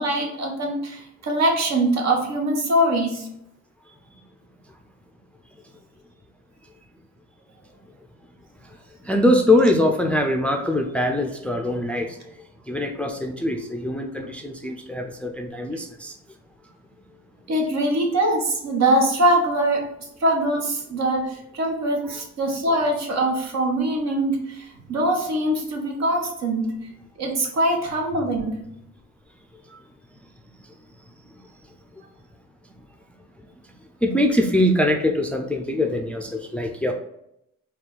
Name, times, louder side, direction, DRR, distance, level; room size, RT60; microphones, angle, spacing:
voice 1, 0.0-3.3 17.5-19.8 20.2-26.8 27.2-28.6, right 1 dB, 60° right, 1 dB, 1.1 m, -23 dB
voice 2, 9.0-12.2 12.7-16.1 34.0-36.9, left 1 dB, 5° left, 3 dB, 0.4 m, -22 dB
4.2 x 2.4 x 3.8 m, 0.79 s
cardioid pair, 90°, 30 cm